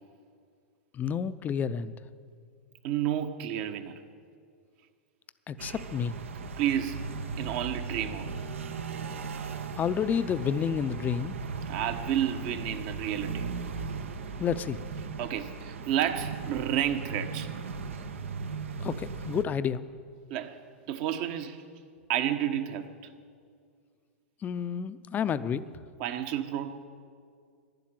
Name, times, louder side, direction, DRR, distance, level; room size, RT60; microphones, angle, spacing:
voice 1, 0.9-1.9 5.5-6.2 9.8-11.4 14.4-14.8 18.8-19.9 24.4-25.7, left 7 dB, 25° left, 13 dB, 0.6 m, -30 dB
voice 2, 2.8-4.0 6.6-8.3 11.7-13.5 15.2-17.5 20.3-20.6 20.9-21.6 22.1-22.9 26.0-26.7, right 10 dB, 50° right, 8 dB, 1.2 m, -31 dB
sound 1, 5.6-19.4, right 5 dB, 80° right, 1.1 m, -37 dB
12.0 x 11.0 x 9.0 m, 2.1 s
hypercardioid pair, 110°, 7 cm